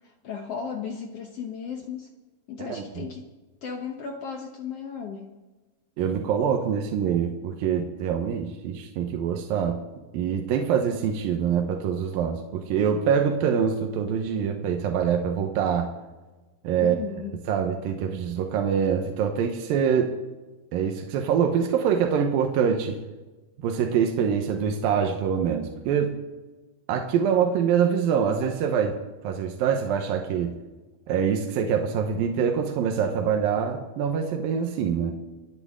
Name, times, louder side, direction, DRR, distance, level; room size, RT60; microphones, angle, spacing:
voice 1, 0.0-2.1 2.5-3.3 3.6-5.4 16.8-17.4, left 6 dB, 65° left, 3 dB, 1.5 m, -35 dB
voice 2, 6.0-9.8 10.1-15.9 16.6-17.0 17.5-20.1 20.7-23.0 23.6-26.1 26.9-29.0 29.2-30.5 31.1-35.1, right 7 dB, 75° right, 3 dB, 2.7 m, -25 dB
27.0 x 9.8 x 3.7 m, 1.2 s
omnidirectional pair, 4.2 m